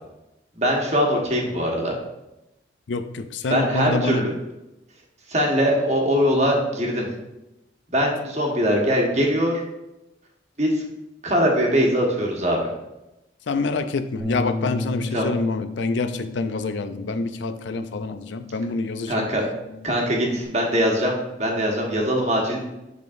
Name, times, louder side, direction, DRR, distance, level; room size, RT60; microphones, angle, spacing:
voice 1, 0.6-1.9 3.5-4.3 5.3-7.1 7.9-9.6 10.6-10.8 11.2-12.7 15.1-15.3 19.1-19.4 19.8-22.7, equal, 40° right, -1 dB, 1.3 m, -22 dB
voice 2, 2.9-4.2 13.5-19.3, left 3 dB, 85° left, 10 dB, 0.4 m, -27 dB
Bass guitar, 14.2-20.5, left 2 dB, 20° right, 0.7 m, -35 dB
11.0 x 3.7 x 2.6 m, 0.95 s
head